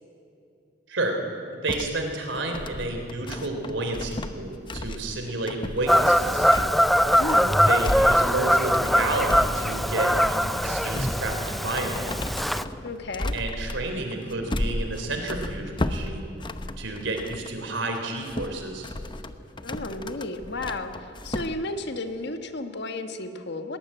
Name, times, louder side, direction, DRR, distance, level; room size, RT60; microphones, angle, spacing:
voice 1, 0.9-1.2 1.6-6.5 7.7-12.2 13.3-16.3 16.8-18.9, right 2 dB, 80° right, 4 dB, 3.5 m, -30 dB
sound 1, 1.7-17.6 17.9-21.5, left 1 dB, 25° left, 0.8 m, -34 dB
Fowl / Bird vocalization bird call bird song, 5.9-12.6, equal, ahead, 0.4 m, -22 dB
voice 2, 7.2-7.5 12.8-13.3 19.6-23.8, left 2 dB, 65° left, 7 dB, 1.4 m, -33 dB
20.0 x 18.5 x 8.8 m, 2.7 s
head